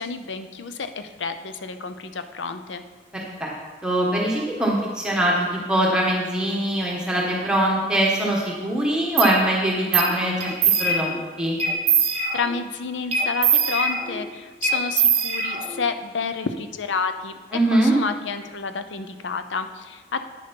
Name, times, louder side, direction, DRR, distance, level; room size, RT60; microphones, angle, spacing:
voice 1, 0.0-2.8 12.3-17.4 17.7-20.2, left 5 dB, 90° left, 9 dB, 0.7 m, -30 dB
voice 2, 3.1-3.5 3.8-10.5 10.8-11.1 11.4-11.6 17.5-17.9, right 1 dB, 5° right, -3 dB, 1.5 m, -22 dB
sound 1, 9.2-9.3 9.9-10.1 10.4-11.2 11.6-12.6 13.1-14.3 14.6-15.9, right 5 dB, 35° right, 1.2 m, -22 dB
9.2 x 6.6 x 5.3 m, 1.3 s
head